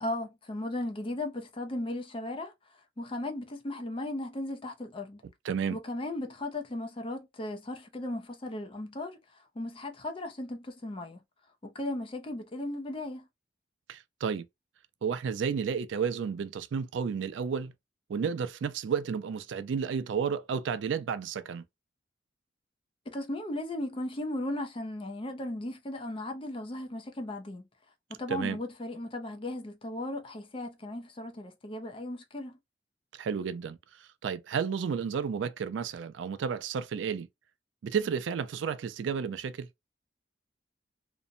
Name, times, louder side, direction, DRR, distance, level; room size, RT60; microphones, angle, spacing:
voice 1, 0.0-2.5 3.0-5.2 5.7-9.2 9.6-11.2 11.6-13.3 23.1-27.7 28.1-32.6, left 1 dB, 30° left, 0.5 m, -36 dB
voice 2, 5.4-5.8 13.9-14.4 15.0-17.7 18.1-21.6 28.3-28.6 33.1-37.3 37.8-39.7, right 6 dB, 75° right, 0.3 m, -32 dB
2.6 x 2.0 x 2.5 m
head